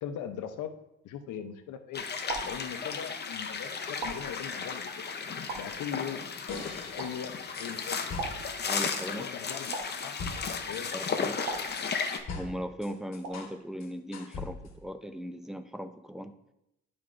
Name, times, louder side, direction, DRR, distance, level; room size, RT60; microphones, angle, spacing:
voice 1, 0.0-0.8 1.0-2.1 2.4-5.1 5.5-6.2 6.9-8.0 9.1-10.2 10.7-11.0, left 8 dB, 80° left, 8 dB, 0.7 m, -40 dB
sound 1, 1.1-1.6 2.3-3.2 4.0-4.9 5.5-6.3 7.0-7.6 8.2-9.1 9.7-10.6 11.5-12.4 13.2-13.8, right 3 dB, 90° right, 1.2 m, -42 dB
sound 2, 1.9-12.2, left 5 dB, 35° left, 0.7 m, -35 dB
sound 3, 6.5-9.1 9.7-13.6 13.8-14.8, left 3 dB, 60° left, 1.2 m, -42 dB
voice 2, 8.7-9.3 10.9-11.4 12.3-16.3, equal, ahead, 10 dB, 0.4 m, -38 dB
11.0 x 4.3 x 2.5 m, 0.85 s
cardioid pair, 90°, 30 cm